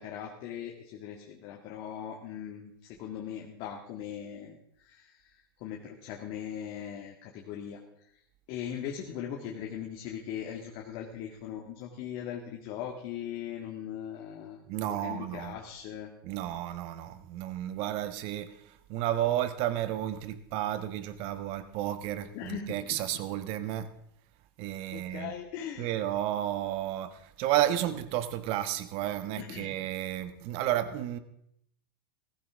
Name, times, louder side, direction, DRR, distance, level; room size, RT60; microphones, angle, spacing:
voice 1, 0.0-4.6 4.8-5.2 5.6-7.8 8.5-14.6 15.0-16.1 22.3-23.1 24.9-26.0 29.4-29.7, left 9 dB, 55° left, 1.9 m, -39 dB
voice 2, 14.7-15.6 16.2-18.5 18.9-23.9 24.6-25.3 25.8-31.2, right 12 dB, 50° right, 1.3 m, -32 dB
15.5 x 15.0 x 3.6 m
hypercardioid pair, 115°, 12 cm